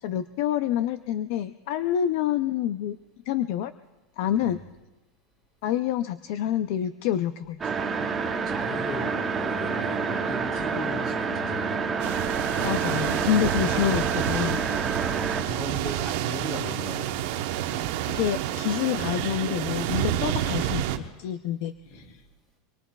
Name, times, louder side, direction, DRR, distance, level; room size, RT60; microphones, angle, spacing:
voice 1, 0.0-3.0 3.3-3.7 4.2-4.6 5.6-7.6 12.6-14.6 18.1-20.9 21.2-22.2, left 10 dB, 55° left, 12 dB, 0.4 m, -27 dB
sound 1, 7.6-15.4, right 5 dB, 15° right, 0.8 m, -28 dB
voice 2, 8.2-11.8 13.4-13.5 15.0-17.1 17.6-18.0 21.9-22.0, equal, 30° left, 0 dB, 5.7 m, -37 dB
sound 2, 12.0-21.0, right 12 dB, 60° right, 0.9 m, -29 dB
25.5 x 22.5 x 2.3 m, 1.1 s
supercardioid pair, 170°, 0 cm